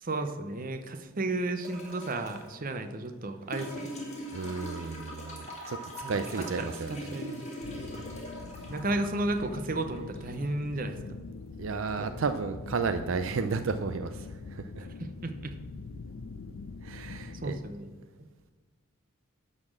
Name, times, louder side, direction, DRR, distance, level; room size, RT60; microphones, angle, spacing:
voice 1, 0.0-3.9 6.0-6.1 6.6-7.4 8.7-11.0 12.0-12.1 14.8-14.9 15.2-15.6 17.4-17.9, right 2 dB, 40° right, 7 dB, 0.8 m, -33 dB
sound 1, 1.6-2.5 3.5-10.5 11.9-12.0, equal, 35° left, 2.3 m, -41 dB
voice 2, 4.3-5.8 6.1-6.9 11.6-14.9 16.8-17.6, right 4 dB, 70° right, 9 dB, 0.5 m, -33 dB
sound 2, 7.6-17.6, left 4 dB, 85° left, 0.5 m, -43 dB
11.5 x 4.2 x 7.3 m, 1.4 s
head